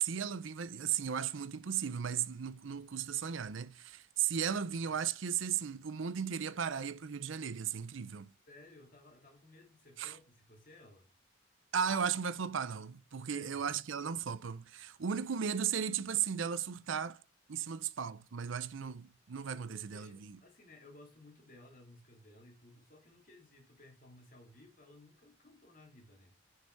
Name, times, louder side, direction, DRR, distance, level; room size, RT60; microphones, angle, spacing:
voice 1, 0.0-8.3 10.0-10.1 11.7-17.2 17.5-20.4, right 8 dB, 75° right, 0.6 m, -36 dB
voice 2, 8.5-11.1 13.2-13.7 19.5-26.4, left 2 dB, 45° left, 2.4 m, -58 dB
6.5 x 5.5 x 4.6 m
head